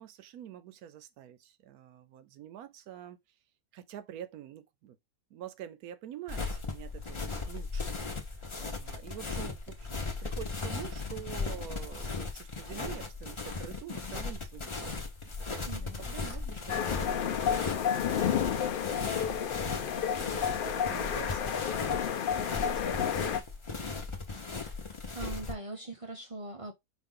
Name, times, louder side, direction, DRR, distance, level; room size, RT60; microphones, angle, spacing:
voice 1, 0.0-3.2 3.7-5.0 5.3-8.0 8.6-15.1 15.5-17.7 18.0-21.9 22.3-23.1, right 11 dB, 85° right, 1.1 m, -47 dB
sound 1, 6.3-25.5, left 4 dB, 30° left, 0.6 m, -37 dB
voice 2, 15.7-16.0 24.6-26.7, right 2 dB, 50° right, 0.4 m, -42 dB
sound 2, 16.7-23.4, left 8 dB, 80° left, 0.4 m, -31 dB
5.0 x 2.5 x 3.7 m
omnidirectional pair, 1.5 m